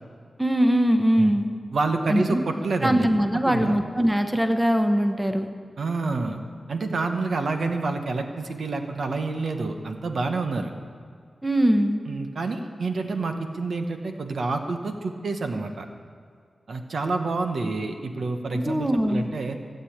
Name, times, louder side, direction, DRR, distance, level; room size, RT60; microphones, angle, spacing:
voice 1, 0.4-1.5 2.1-2.4 2.8-5.5 11.4-12.0 18.6-19.3, equal, 5° right, 6 dB, 1.0 m, -21 dB
voice 2, 1.7-3.1 3.4-3.8 5.8-6.4 6.7-10.7 12.1-15.9 16.7-19.6, right 3 dB, 70° right, 5 dB, 1.1 m, -28 dB
16.0 x 8.0 x 8.6 m, 2.1 s
wide cardioid pair, 95°, 0 cm